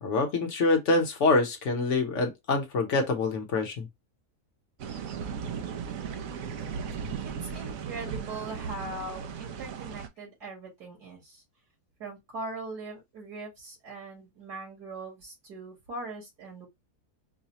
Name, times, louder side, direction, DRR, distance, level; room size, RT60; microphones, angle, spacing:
voice 1, 0.0-3.9, left 3 dB, 55° left, 1.1 m, -25 dB
sound 1, 4.8-10.1, right 6 dB, 65° right, 1.0 m, -36 dB
voice 2, 7.2-11.4 12.0-16.7, right 2 dB, 90° right, 2.6 m, -40 dB
4.8 x 2.1 x 2.8 m
omnidirectional pair, 1.7 m